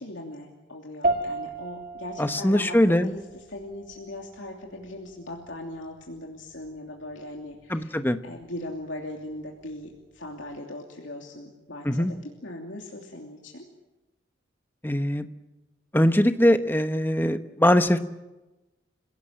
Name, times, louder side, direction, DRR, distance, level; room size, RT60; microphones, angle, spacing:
voice 1, 0.0-7.9 8.2-13.6, left 1 dB, 70° left, 0 dB, 2.9 m, -39 dB
sound 1, 1.0-10.6, right 2 dB, 45° right, 2.3 m, -36 dB
voice 2, 2.2-3.1 7.7-8.2 11.9-12.1 14.8-15.2 15.9-18.0, left 1 dB, 10° left, 9 dB, 1.0 m, -21 dB
27.5 x 18.0 x 8.9 m, 1.1 s
head